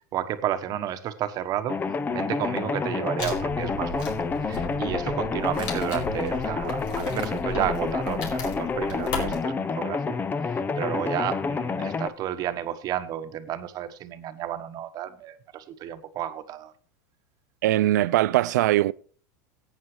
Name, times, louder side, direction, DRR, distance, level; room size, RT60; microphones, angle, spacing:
voice 1, 0.1-16.7, right 11 dB, 45° right, 1.2 m, -32 dB
sound 1, 1.7-12.1, left 4 dB, 20° left, 0.7 m, -29 dB
Wood, 3.2-9.4, left 2 dB, 65° left, 4.8 m, -36 dB
voice 2, 17.6-18.9, right 15 dB, 80° right, 0.4 m, -21 dB
17.0 x 8.9 x 3.2 m
supercardioid pair, 115°, 9 cm